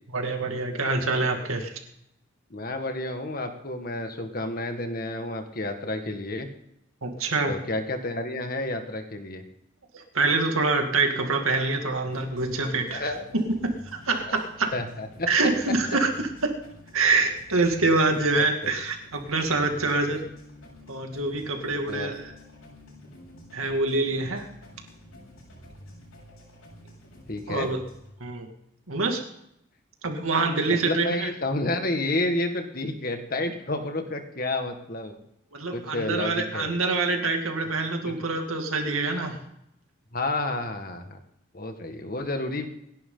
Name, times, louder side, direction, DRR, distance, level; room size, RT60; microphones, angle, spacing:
voice 1, 0.1-1.7 7.0-7.6 9.9-14.7 15.3-16.6 16.9-20.2 20.9-22.3 23.5-24.5 27.5-27.8 28.2-28.5 28.9-29.2 30.0-31.3 35.5-39.4, right 3 dB, 85° right, 4 dB, 2.3 m, -25 dB
voice 2, 2.5-6.5 7.5-9.4 12.9-13.3 14.3-14.4 14.7-15.3 15.9-16.0 18.1-18.5 21.9-22.1 27.3-27.7 30.7-35.2 35.7-36.8 38.0-38.1 40.1-41.2 41.5-42.7, left 2 dB, 45° left, 6 dB, 1.7 m, -30 dB
sound 1, 12.1-28.1, left 1 dB, 90° left, 7.3 m, -49 dB
27.5 x 11.0 x 3.9 m, 0.79 s
head